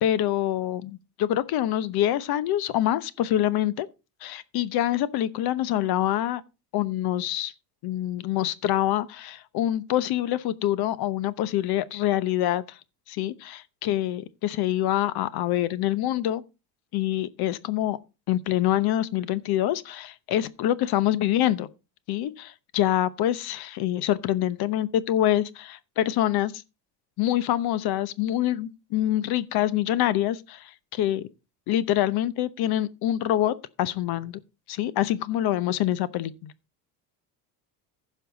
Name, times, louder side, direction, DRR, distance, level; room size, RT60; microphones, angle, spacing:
voice 1, 0.0-3.9 4.2-6.4 6.7-7.5 7.8-12.8 13.1-16.4 16.9-18.0 18.3-21.7 22.1-26.6 27.2-31.3 31.7-34.4 34.7-36.5, left 12 dB, 60° left, 0.9 m, -25 dB
15.0 x 5.6 x 4.0 m
cardioid pair, 135°, 44 cm